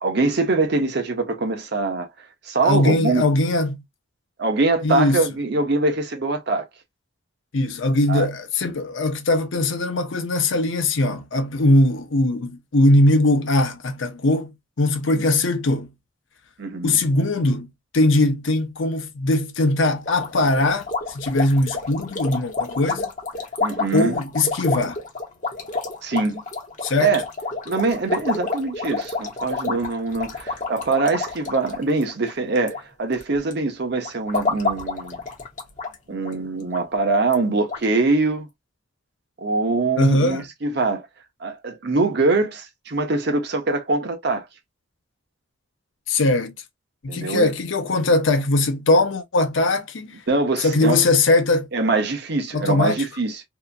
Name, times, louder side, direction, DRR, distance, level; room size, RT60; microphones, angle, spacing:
voice 1, 0.0-2.1 2.4-3.2 4.4-6.7 8.1-8.3 16.6-17.0 23.6-24.2 26.0-26.4 27.0-27.2 27.7-35.2 36.1-38.5 39.4-41.1 41.4-44.5 47.1-47.5 50.3-51.0 51.7-53.4, right 3 dB, 55° right, 0.8 m, -23 dB
voice 2, 2.6-3.8 4.8-5.2 7.5-14.5 14.8-15.9 16.8-17.7 17.9-23.1 23.9-25.0 26.8-27.1 40.0-40.4 46.1-46.5 47.0-50.1 50.6-51.7 52.5-53.1, left 2 dB, 70° left, 0.7 m, -20 dB
sound 1, 20.1-32.8 33.1-33.5 34.0-35.9 36.2-36.3 36.7-36.8 37.3-37.4 37.7-37.9, left 3 dB, 35° left, 0.8 m, -29 dB
2.8 x 2.5 x 2.4 m
head